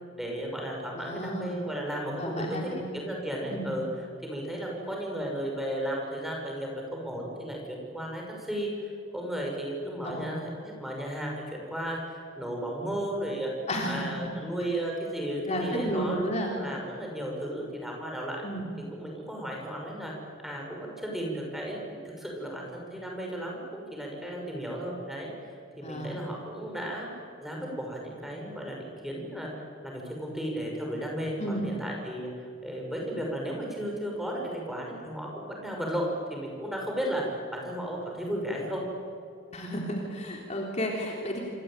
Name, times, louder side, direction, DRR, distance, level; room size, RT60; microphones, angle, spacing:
voice 1, 0.1-13.5 13.9-18.4 18.9-20.1 20.4-25.3 25.8-27.1 27.4-32.3 32.6-38.8, equal, ahead, -1 dB, 6.3 m, -34 dB
voice 2, 0.9-1.6 2.2-2.8 3.5-3.7 10.0-10.3 13.7-14.1 15.5-16.5 18.4-18.7 25.8-26.1 31.4-31.7 39.5-41.4, equal, 35° left, 0 dB, 3.5 m, -32 dB
27.5 x 23.5 x 9.1 m, 2.5 s
head